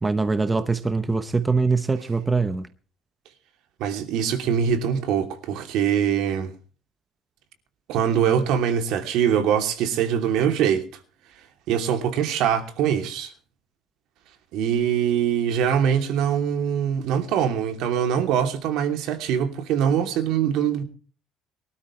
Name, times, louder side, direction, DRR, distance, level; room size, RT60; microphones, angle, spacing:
voice 1, 0.0-2.7, right 4 dB, 10° right, 0.8 m, -23 dB
voice 2, 3.8-6.5 7.9-10.8 11.7-13.3 14.5-20.8, right 8 dB, 70° right, 2.9 m, -23 dB
23.5 x 13.0 x 3.2 m
cardioid pair, 175°, 0 cm